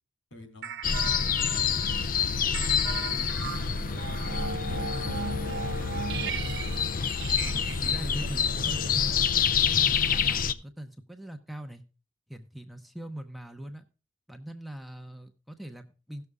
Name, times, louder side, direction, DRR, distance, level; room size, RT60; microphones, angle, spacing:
voice 1, 0.3-1.8 2.3-6.2, equal, 80° left, 5 dB, 3.4 m, -48 dB
sound 1, 0.6-9.5, right 4 dB, 60° right, 0.8 m, -37 dB
sound 2, 0.8-10.5, left 7 dB, 45° left, 0.5 m, -27 dB
voice 2, 7.4-9.3 9.7-11.8 12.3-13.9 14.3-16.3, right 1 dB, ahead, 4 dB, 0.8 m, -41 dB
17.0 x 6.8 x 3.5 m, 0.33 s
head